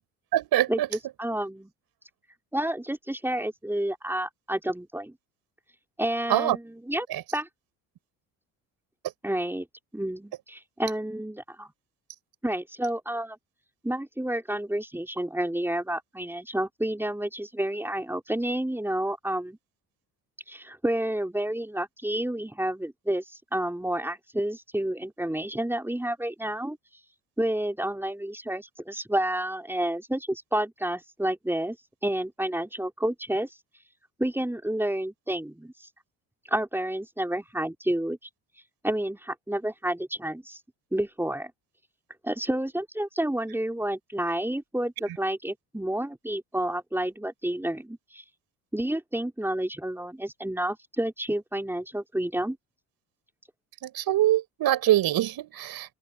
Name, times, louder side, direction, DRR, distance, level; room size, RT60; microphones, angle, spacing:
voice 1, 0.3-0.9 6.3-6.6 7.1-7.2 45.1-45.2 53.8-55.9, right 13 dB, 65° right, 5.6 m, -24 dB
voice 2, 1.2-1.7 2.5-5.2 6.0-6.6 6.9-7.1 7.3-7.5 9.2-9.7 9.9-11.7 12.4-13.4 13.8-19.6 20.5-26.8 27.4-31.8 32.0-33.5 34.2-35.7 36.5-38.2 38.8-40.6 40.9-41.5 42.2-48.2 48.7-52.6, right 1 dB, 5° right, 4.5 m, -30 dB
open air
hypercardioid pair, 65°, 40 cm